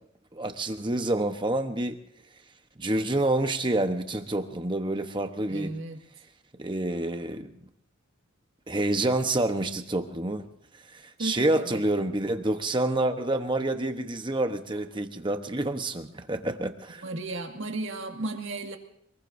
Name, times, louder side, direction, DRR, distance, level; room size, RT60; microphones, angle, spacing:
voice 1, 0.3-2.0 2.8-5.7 6.6-7.6 8.7-10.5 10.9-17.0, right 1 dB, 20° right, 1.0 m, -28 dB
voice 2, 5.5-6.0 11.2-11.8 17.0-18.8, right 2 dB, 55° right, 2.0 m, -34 dB
26.5 x 20.5 x 2.7 m
head